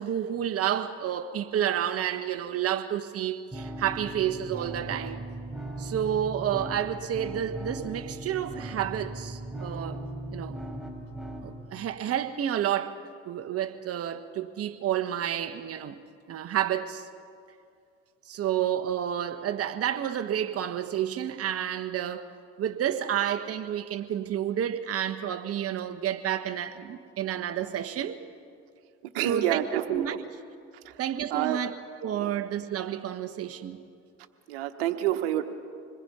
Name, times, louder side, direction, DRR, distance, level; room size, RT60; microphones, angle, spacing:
voice 1, 0.0-5.2 5.8-10.0 10.3-10.6 11.4-13.0 13.3-16.0 16.3-17.1 18.3-22.3 22.6-28.2 29.2-30.2 31.0-33.8, right 10 dB, 50° right, 1.4 m, -30 dB
sound 1, 3.5-11.5, right 1 dB, ahead, 4.5 m, -38 dB
voice 2, 29.1-30.0 30.8-31.0 31.3-31.6 32.1-32.4 34.5-35.5, right 12 dB, 90° right, 1.3 m, -28 dB
26.5 x 21.0 x 5.6 m
supercardioid pair, 80°, 30 cm